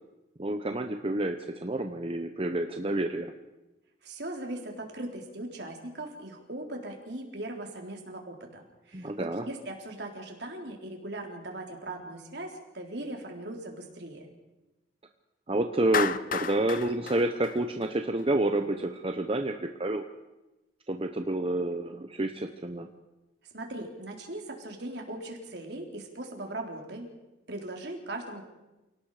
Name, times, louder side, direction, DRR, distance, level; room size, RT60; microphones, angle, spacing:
voice 1, 0.4-3.3 8.9-9.4 15.5-20.1 20.9-22.9, right 1 dB, 30° right, 5 dB, 1.0 m, -29 dB
voice 2, 4.0-14.3 23.4-27.1 27.5-28.5, right 1 dB, 65° right, 1 dB, 4.0 m, -39 dB
Clapping, 15.9-18.2, left 6 dB, 50° left, 0.8 m, -32 dB
28.5 x 18.0 x 5.0 m, 1.0 s
head